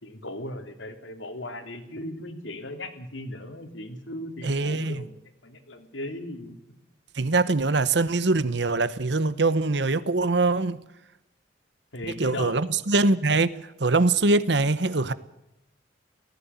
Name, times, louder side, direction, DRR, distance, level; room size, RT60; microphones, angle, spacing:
voice 1, 0.0-5.2 5.4-6.6 11.9-12.6, left 1 dB, 85° left, 3.1 m, -37 dB
voice 2, 4.4-5.0 7.1-10.8 12.1-15.1, right 3 dB, 65° right, 1.0 m, -23 dB
18.5 x 15.5 x 9.5 m
head